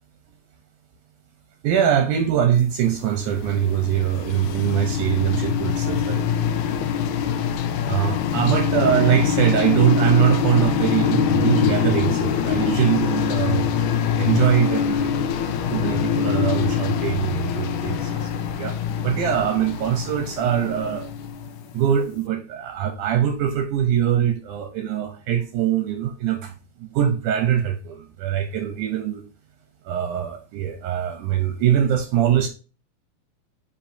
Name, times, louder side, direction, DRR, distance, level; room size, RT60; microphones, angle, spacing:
voice 1, 1.6-6.3 6.7-7.1 7.9-13.6 14.2-15.1 15.4-18.8 19.0-21.1 21.7-26.5 26.8-29.2 29.9-32.5, right 9 dB, 75° right, 2.0 m, -22 dB
sound 1, 2.9-21.9, left 8 dB, 80° left, 1.9 m, -24 dB
9.0 x 4.5 x 2.7 m
omnidirectional pair, 4.1 m